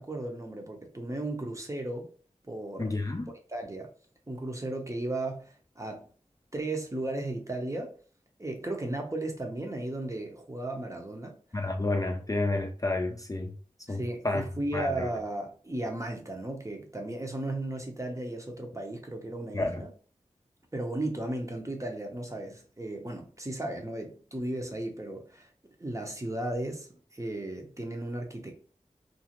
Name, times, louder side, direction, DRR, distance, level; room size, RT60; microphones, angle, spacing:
voice 1, 0.0-2.1 2.5-2.9 3.5-3.9 4.3-6.1 6.5-7.9 8.4-11.3 13.9-19.9 20.7-25.5 25.8-28.6, right 1 dB, 25° right, 0.7 m, -35 dB
voice 2, 2.8-3.3 11.5-13.5 13.9-14.4 14.7-15.1 19.5-19.8, left 2 dB, 25° left, 0.4 m, -30 dB
2.5 x 2.4 x 2.9 m
wide cardioid pair, 45°, 13 cm